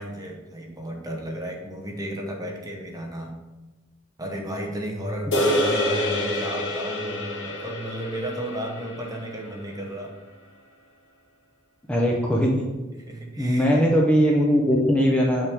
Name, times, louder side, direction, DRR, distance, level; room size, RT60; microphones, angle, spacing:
voice 1, 0.0-3.4 4.2-10.1 12.9-13.8, right 1 dB, 20° right, 1 dB, 0.9 m, -34 dB
sound 1, 5.3-9.8, left 1 dB, 65° left, 1.3 m, -27 dB
voice 2, 11.9-12.5 13.4-15.5, equal, 5° left, -3 dB, 0.6 m, -20 dB
6.5 x 5.6 x 3.5 m, 1.2 s
head